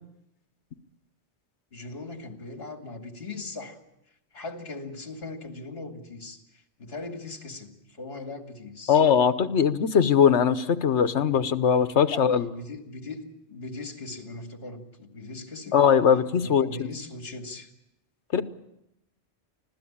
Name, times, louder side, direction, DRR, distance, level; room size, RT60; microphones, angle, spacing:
voice 1, 1.7-3.8 4.3-9.0 12.1-13.2 13.5-15.8 16.4-17.7 18.3-18.4, left 3 dB, 60° left, 5 dB, 2.5 m, -39 dB
voice 2, 8.9-12.5 15.7-16.9 18.3-18.4, left 7 dB, 75° left, 11 dB, 1.3 m, -21 dB
25.5 x 16.0 x 8.7 m, 0.86 s
omnidirectional pair, 1.2 m